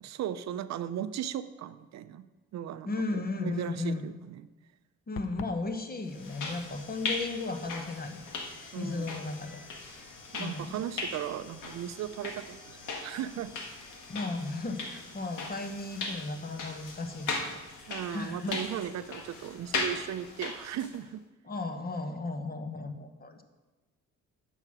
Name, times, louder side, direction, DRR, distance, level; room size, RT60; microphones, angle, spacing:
voice 1, 0.0-2.3 2.5-4.5 8.7-9.2 10.3-13.5 17.9-21.2, right 10 dB, 65° right, 13 dB, 0.5 m, -37 dB
voice 2, 2.9-4.1 5.1-8.3 8.8-9.6 10.4-10.8 14.1-18.6 21.4-23.4, left 3 dB, 30° left, 6 dB, 1.1 m, -35 dB
sound 1, 5.2-5.6, left 9 dB, 45° left, 0.5 m, -41 dB
sound 2, 6.1-21.0, left 3 dB, 85° left, 1.6 m, -39 dB
8.9 x 6.0 x 6.0 m, 1.2 s
cardioid pair, 90°, 30 cm